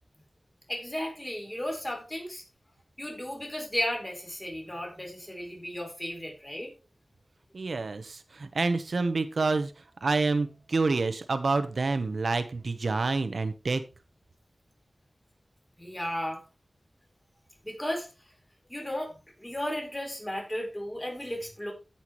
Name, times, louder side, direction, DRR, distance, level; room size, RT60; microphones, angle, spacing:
voice 1, 0.7-2.4 3.0-6.7 15.8-16.4 17.6-18.1 18.7-21.7, left 1 dB, 20° left, 0 dB, 4.2 m, -34 dB
voice 2, 7.5-9.7 10.0-13.8, right 3 dB, 80° right, 11 dB, 0.9 m, -28 dB
16.0 x 5.8 x 3.1 m, 0.30 s
wide cardioid pair, 55°, 0 cm